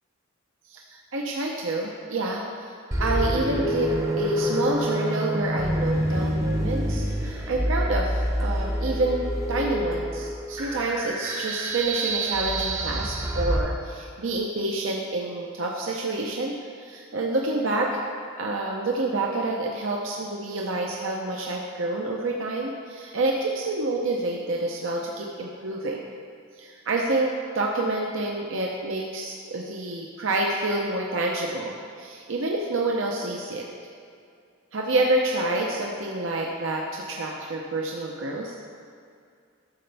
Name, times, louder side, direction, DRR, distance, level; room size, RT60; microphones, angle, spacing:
voice 1, 0.7-2.7 3.0-18.0 18.4-26.1 26.6-33.7 34.7-38.5, right 2 dB, 75° right, -1 dB, 0.7 m, -28 dB
sound 1, 2.9-13.6, equal, 15° right, 0.7 m, -27 dB
12.0 x 6.8 x 3.4 m, 2.3 s
head